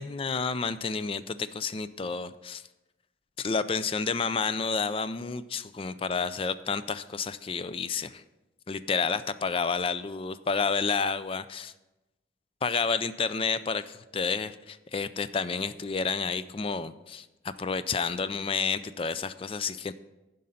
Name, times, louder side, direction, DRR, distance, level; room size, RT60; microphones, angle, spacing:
voice 1, 0.0-2.6 3.4-8.2 8.7-11.7 12.6-17.3 17.6-19.9, left 5 dB, 30° left, 14 dB, 0.4 m, -30 dB
11.5 x 5.3 x 5.6 m, 1.0 s
head